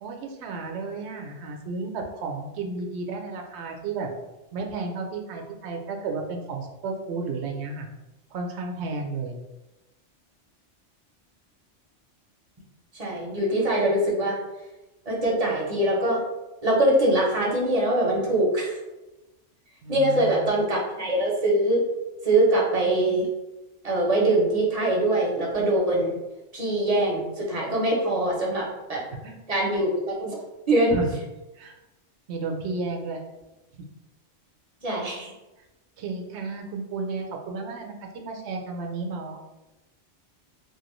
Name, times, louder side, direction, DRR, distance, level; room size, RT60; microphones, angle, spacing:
voice 1, 0.0-4.1 4.5-7.9 8.3-9.4 19.8-20.5 29.2-29.3 30.9-31.1 31.6-31.8 32.3-33.2 36.0-39.4, right 3 dB, 70° right, 3 dB, 0.8 m, -32 dB
voice 2, 12.9-14.4 15.1-16.2 16.6-18.8 19.9-21.8 22.2-23.3 23.8-26.1 26.5-29.0 29.5-30.4 30.7-30.9 34.8-35.3, right 1 dB, 40° right, -3 dB, 0.7 m, -23 dB
3.1 x 2.4 x 3.0 m, 1.0 s
omnidirectional pair, 1.2 m